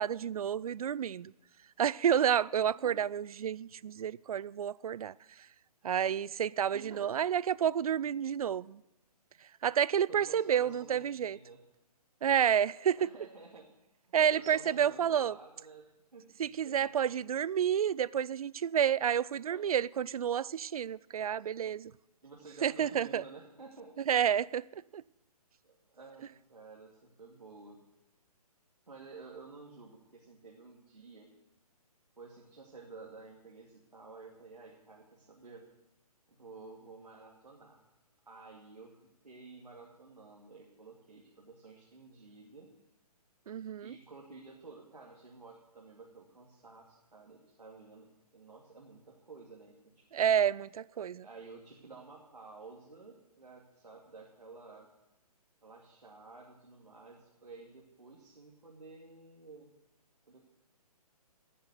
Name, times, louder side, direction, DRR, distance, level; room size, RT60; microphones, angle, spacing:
voice 1, 0.0-1.3 1.8-5.1 5.8-8.8 9.6-11.4 12.2-13.0 14.1-15.3 16.4-21.9 22.6-23.2 24.1-25.0 43.5-43.9 50.1-51.2, right 9 dB, 65° right, 0.4 m, -30 dB
voice 2, 6.7-7.2 10.1-11.6 12.9-13.7 14.2-16.9 19.5-19.7 22.2-23.9 25.6-27.8 28.9-31.3 32.2-35.6 36.3-37.8 38.3-39.0 39.2-42.7 43.8-48.1 48.3-50.3 51.1-54.9 55.6-59.7 60.3-60.4, right 4 dB, 85° right, 2.4 m, -52 dB
14.5 x 6.8 x 8.2 m
figure-of-eight pair, 140°, 20 cm